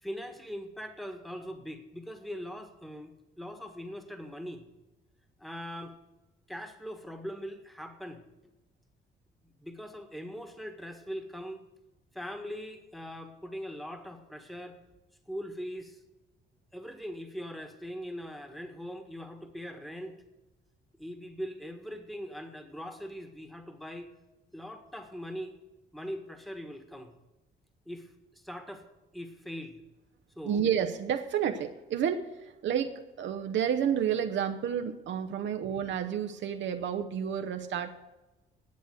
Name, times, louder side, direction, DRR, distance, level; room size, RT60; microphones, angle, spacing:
voice 1, 0.0-4.6 5.4-6.0 6.5-8.5 9.4-11.6 12.1-14.8 15.3-16.0 16.7-20.2 21.0-24.1 24.5-25.5 25.9-27.1 27.8-28.9 29.1-29.8 30.4-30.6, equal, ahead, 7 dB, 1.5 m, -41 dB
voice 2, 30.4-37.9, right 8 dB, 70° right, 7 dB, 0.8 m, -30 dB
10.5 x 8.0 x 7.9 m, 1.1 s
cardioid pair, 90°, 20 cm